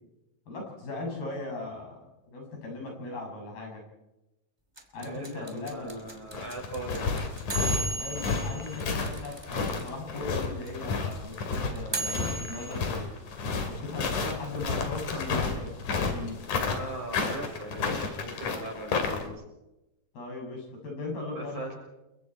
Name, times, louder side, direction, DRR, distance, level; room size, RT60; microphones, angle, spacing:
voice 1, 0.5-3.8 4.9-6.1 8.0-13.1 13.8-16.4 20.1-21.6, left 2 dB, 85° left, 0 dB, 8.5 m, -38 dB
sound 1, 4.8-9.9 10.2-10.3 10.4-12.7, right 2 dB, 10° right, 1.9 m, -35 dB
voice 2, 5.0-7.1 16.6-19.4 21.3-21.7, right 1 dB, 55° right, -1 dB, 7.8 m, -39 dB
sound 2, 6.1-19.3, left 4 dB, 60° left, 3.8 m, -31 dB
30.0 x 23.0 x 4.5 m, 0.97 s
omnidirectional pair, 4.2 m